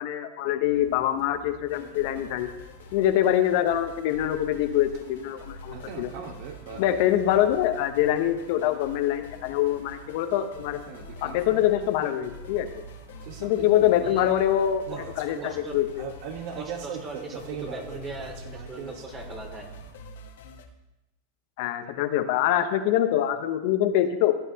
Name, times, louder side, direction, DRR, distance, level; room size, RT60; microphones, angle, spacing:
voice 1, 0.0-2.5 2.9-6.1 6.8-10.8 11.2-12.7 13.4-14.8 15.2-16.1 21.6-24.3, left 11 dB, 60° left, 7 dB, 0.8 m, -24 dB
sound 1, 0.6-20.0, right 6 dB, 60° right, 1.2 m, -43 dB
sound 2, 1.7-20.7, left 2 dB, 75° left, 1.2 m, -45 dB
voice 2, 15.4-15.8 16.6-19.7, right 2 dB, 30° right, 2 dB, 2.6 m, -40 dB
15.0 x 8.0 x 2.9 m, 0.93 s
hypercardioid pair, 105°, 0 cm